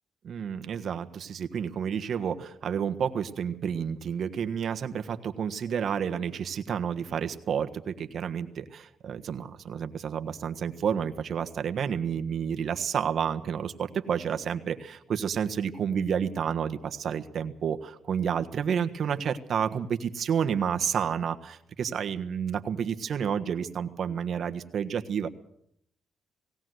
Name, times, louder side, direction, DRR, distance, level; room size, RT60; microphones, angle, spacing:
voice 1, 0.2-25.3, right 7 dB, 60° right, 8 dB, 1.5 m, -30 dB
18.5 x 17.5 x 7.9 m, 0.71 s
cardioid pair, 90°, 0 cm